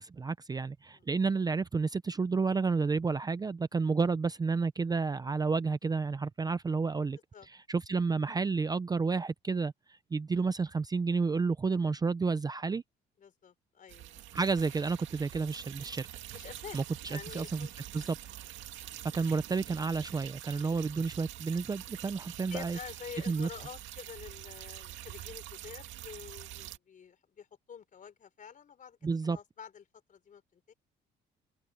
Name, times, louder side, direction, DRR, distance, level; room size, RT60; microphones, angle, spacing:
voice 1, 0.0-7.2 7.5-9.7 10.1-12.8 14.3-16.1 16.7-17.7 17.9-18.2 19.1-22.8 23.3-23.5 29.0-29.4, right 4 dB, 20° right, 0.5 m, -31 dB
voice 2, 7.1-7.5 13.2-14.4 16.3-16.8 17.1-18.1 18.8-18.9 22.5-30.7, left 7 dB, 45° left, 4.0 m, -48 dB
sound 1, 13.9-26.8, right 13 dB, 80° right, 2.2 m, -46 dB
open air
cardioid pair, 115°, 19 cm